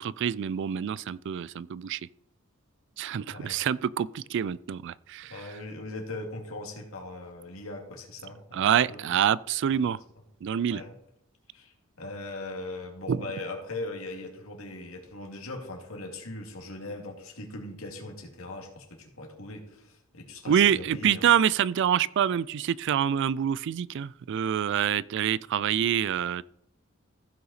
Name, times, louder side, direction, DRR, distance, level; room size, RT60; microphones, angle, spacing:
voice 1, 0.0-2.0 3.0-5.3 8.5-10.0 10.4-10.8 13.1-13.2 20.5-26.4, right 9 dB, 60° right, 0.3 m, -26 dB
voice 2, 5.3-9.2 9.7-9.8 10.7-10.9 11.5-21.3, left 2 dB, 90° left, 2.4 m, -40 dB
15.0 x 5.7 x 4.1 m
head